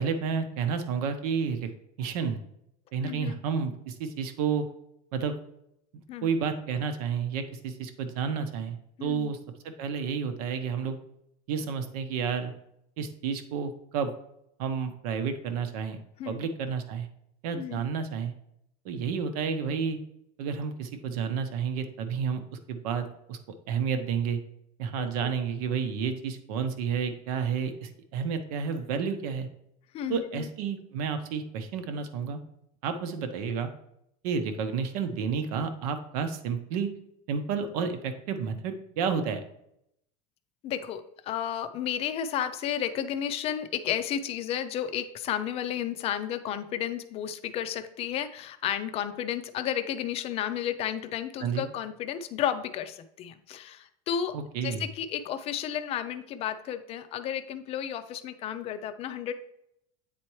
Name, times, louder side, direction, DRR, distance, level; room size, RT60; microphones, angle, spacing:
voice 1, 0.0-1.7 2.0-2.4 2.9-4.6 5.1-5.3 6.2-9.4 9.8-11.0 11.5-12.5 13.0-14.1 14.6-16.0 16.3-17.1 17.4-18.3 18.8-20.0 20.4-22.4 22.7-23.4 23.7-24.4 24.8-29.5 30.1-32.4 32.8-33.7 34.2-36.9 37.3-39.4 51.4-51.6 54.3-54.9, right 6 dB, 75° right, 8 dB, 1.0 m, -30 dB
voice 2, 3.0-3.4 6.1-6.3 9.0-9.3 16.2-16.4 17.5-17.8 25.0-25.3 29.9-30.5 40.6-54.3 54.6-59.3, left 10 dB, 30° left, 11 dB, 0.5 m, -32 dB
8.5 x 4.4 x 3.1 m, 0.77 s
supercardioid pair, 155°, 19 cm